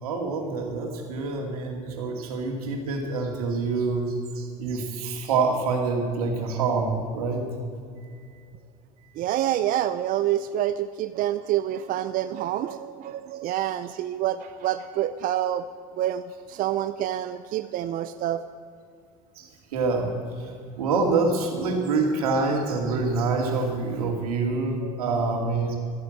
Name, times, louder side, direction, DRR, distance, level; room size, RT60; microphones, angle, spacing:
voice 1, 0.0-7.4 13.4-13.5 19.4-20.1 20.4-20.5 20.8-25.8, right 4 dB, 90° right, 2 dB, 2.6 m, -26 dB
voice 2, 9.2-15.6 16.0-16.2 16.5-18.4 24.8-25.0, right 12 dB, 50° right, 11 dB, 0.6 m, -27 dB
14.0 x 9.6 x 7.9 m, 2.3 s
hypercardioid pair, 85°, 18 cm